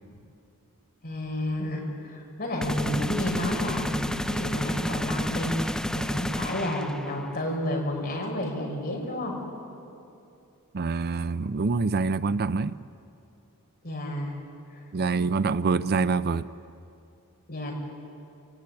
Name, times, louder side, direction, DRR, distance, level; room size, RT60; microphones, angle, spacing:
voice 1, 1.0-5.5 5.9-9.3 13.8-14.3 17.5-17.7, left 1 dB, 45° left, -1 dB, 5.6 m, -31 dB
sound 1, 2.6-7.3, equal, 5° left, 0.6 m, -30 dB
voice 2, 10.7-12.8 14.9-16.5, right 4 dB, 45° right, 14 dB, 0.5 m, -26 dB
28.5 x 17.5 x 9.7 m, 2.7 s
head